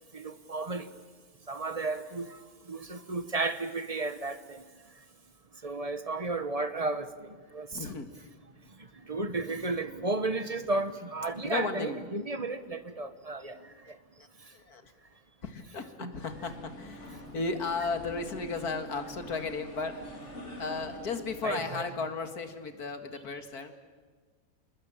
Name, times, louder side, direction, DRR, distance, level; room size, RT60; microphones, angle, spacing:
voice 1, 0.1-0.9 1.5-2.4 2.7-4.7 5.6-7.9 9.0-14.0 16.0-16.1 21.4-21.8, right 3 dB, 25° right, 1.2 m, -33 dB
voice 2, 7.7-8.3 11.4-12.0 13.4-14.9 15.4-20.0 20.6-23.7, left 4 dB, 75° left, 2.5 m, -35 dB
sound 1, 16.2-21.6, equal, 50° left, 4.3 m, -45 dB
27.5 x 20.5 x 8.9 m
omnidirectional pair, 1.6 m